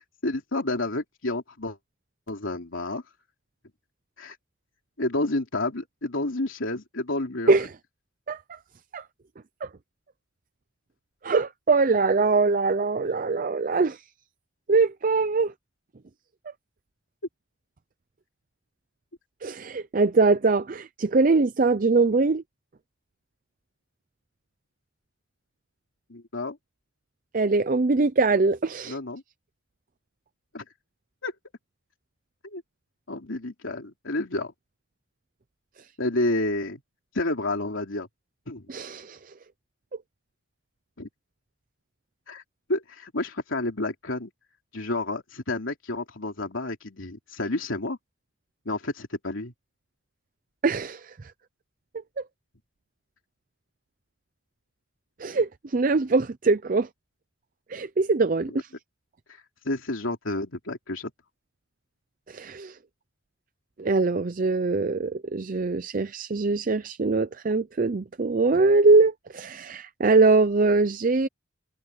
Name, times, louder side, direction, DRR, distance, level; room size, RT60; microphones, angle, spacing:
voice 1, 0.0-1.8 2.3-3.0 4.2-4.4 5.0-7.5 26.1-26.6 28.9-29.2 30.5-30.6 31.2-31.3 32.4-32.6 33.1-34.5 36.0-36.8 37.1-38.1 38.5-38.7 41.0-41.1 42.3-42.4 42.7-44.3 44.7-48.0 48.6-49.5 59.6-61.1, left 2 dB, 85° left, 3.1 m, -30 dB
voice 2, 11.2-14.0 14.7-15.5 19.4-22.4 27.3-29.0 38.7-39.2 50.6-51.1 52.2-52.3 55.2-56.9 57.7-58.7 62.3-62.8 63.8-71.3, right 3 dB, 45° right, 0.5 m, -22 dB
head